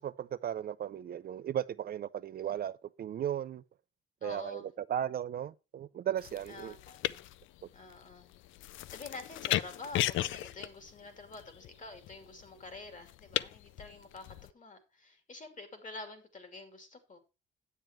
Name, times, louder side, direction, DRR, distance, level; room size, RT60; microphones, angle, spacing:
voice 1, 0.0-3.6 4.2-4.6 4.9-6.8, right 10 dB, 50° right, 0.4 m, -36 dB
voice 2, 4.2-4.7 6.5-7.3 7.7-8.3 8.9-17.2, left 3 dB, 40° left, 2.6 m, -48 dB
sound 1, 6.2-14.5, left 14 dB, 80° left, 0.4 m, -37 dB
9.3 x 7.5 x 4.4 m
cardioid pair, 90°, 20 cm